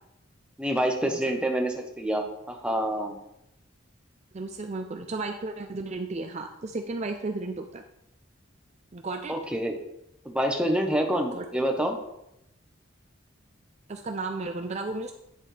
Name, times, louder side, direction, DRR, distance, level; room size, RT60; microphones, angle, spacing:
voice 1, 0.6-3.2 9.3-9.8 10.2-12.0, right 1 dB, 5° right, 2 dB, 0.9 m, -27 dB
voice 2, 4.3-7.8 8.9-9.4 11.3-11.6 13.9-15.1, right 3 dB, 35° right, 5 dB, 0.5 m, -34 dB
10.0 x 7.3 x 3.3 m, 0.84 s
head